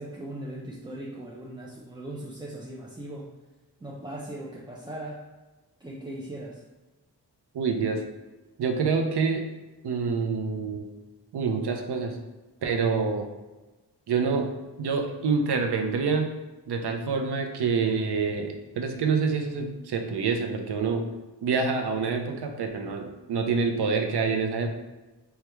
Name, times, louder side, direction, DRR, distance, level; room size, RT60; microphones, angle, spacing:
voice 1, 0.0-3.3 3.8-5.3 5.8-6.6, right 1 dB, 10° right, -4 dB, 0.3 m, -39 dB
voice 2, 7.5-8.0 8.6-9.5 9.8-10.9 11.3-12.2 12.6-13.3 14.1-14.5 14.8-16.3 16.7-21.0 21.4-24.7, right 5 dB, 70° right, 4 dB, 0.5 m, -26 dB
3.3 x 2.3 x 3.0 m, 1.2 s
wide cardioid pair, 70°, 41 cm